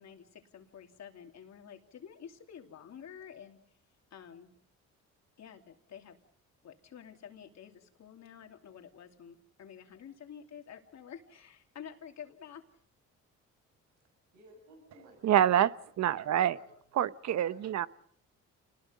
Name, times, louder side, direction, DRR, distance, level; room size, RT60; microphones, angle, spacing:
voice 1, 0.0-3.6 4.1-4.5 5.4-6.2 6.6-12.6, left 8 dB, 65° left, 4 dB, 2.9 m, -50 dB
voice 2, 14.3-15.4 16.5-16.7 17.2-17.7, right 2 dB, 90° right, 4 dB, 7.0 m, -56 dB
voice 3, 15.2-15.7 16.0-16.5 17.0-17.9, right 11 dB, 65° right, 15 dB, 0.9 m, -26 dB
29.0 x 20.5 x 5.2 m, 0.63 s
cardioid pair, 90°, 30 cm